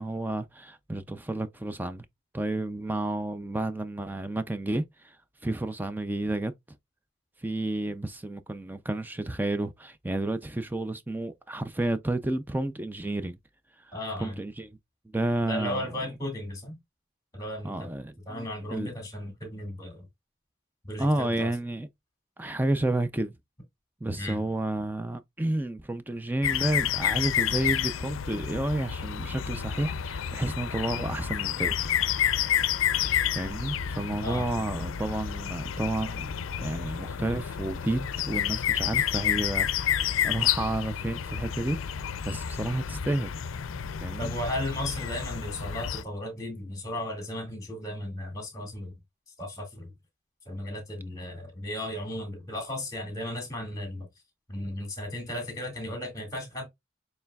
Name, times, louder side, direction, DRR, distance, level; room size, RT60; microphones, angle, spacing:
voice 1, 0.0-2.1 2.3-5.2 5.4-6.5 7.4-13.4 13.8-13.9 14.2-14.7 15.1-15.9 17.6-18.4 18.7-18.9 21.0-21.9 22.4-23.3 24.0-32.6 33.3-36.3 36.6-41.8 42.2-43.3 44.0-44.3, right 1 dB, 10° right, 0.3 m, -31 dB
voice 2, 13.9-14.4 15.4-16.8 17.3-17.9 18.3-20.1 20.9-21.5 24.2-24.4 34.2-34.7 44.2-48.9 49.4-49.9 50.5-54.1 54.5-56.7, left 1 dB, 20° left, 2.1 m, -35 dB
sound 1, 26.4-46.0, left 9 dB, 90° left, 0.4 m, -30 dB
6.8 x 3.3 x 2.3 m
head